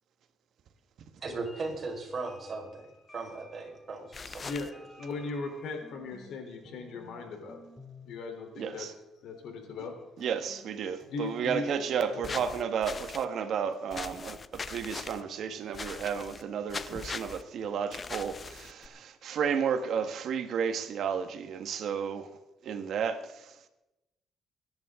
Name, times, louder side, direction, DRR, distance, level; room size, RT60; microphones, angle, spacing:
sound 1, 1.2-6.4 6.6-7.2 7.5-8.2 10.2-19.1, left 2 dB, 15° left, 2.6 m, -56 dB
voice 1, 1.2-2.9 3.1-4.5, right 3 dB, 45° right, 4.8 m, -37 dB
sound 2, 4.1-4.7 12.2-13.2 13.9-15.2 15.7-16.4 16.7-17.4 17.9-18.9, left 4 dB, 35° left, 0.7 m, -40 dB
voice 2, 5.0-7.6 8.0-8.9 9.2-9.9 11.1-11.6 12.1-12.4, left 3 dB, 80° left, 3.5 m, -38 dB
voice 3, 8.6-8.9 10.2-22.3 22.6-23.7, right 7 dB, 70° right, 1.5 m, -32 dB
23.5 x 10.5 x 3.7 m
cardioid pair, 90°, 0 cm